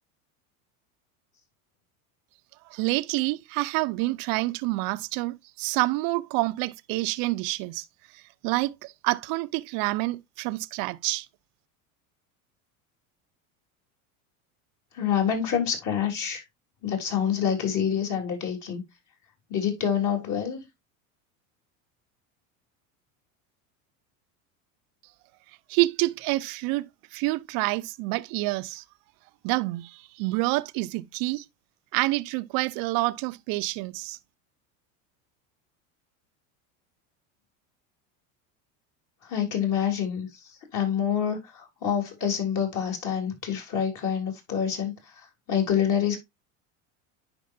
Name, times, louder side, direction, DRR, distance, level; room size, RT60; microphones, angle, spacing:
voice 1, 2.7-7.8 8.1-11.3 25.7-28.8 29.4-31.4 31.9-34.2, right 21 dB, 55° right, 0.6 m, -28 dB
voice 2, 14.9-16.4 16.8-18.8 19.5-20.6 39.2-46.2, left 8 dB, 45° left, 3.4 m, -27 dB
10.0 x 4.7 x 2.6 m
supercardioid pair, 105°, 42 cm